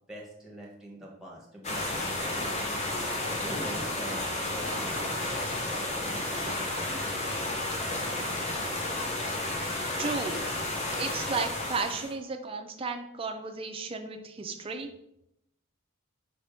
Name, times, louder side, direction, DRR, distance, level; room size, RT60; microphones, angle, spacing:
voice 1, 0.1-2.8 3.4-7.3, right 1 dB, ahead, -3 dB, 0.9 m, -44 dB
sound 1, 1.6-12.1, left 2 dB, 30° left, 0.6 m, -32 dB
voice 2, 10.0-10.5 10.9-14.9, right 4 dB, 25° right, 6 dB, 0.3 m, -34 dB
4.8 x 3.4 x 2.6 m, 0.79 s
head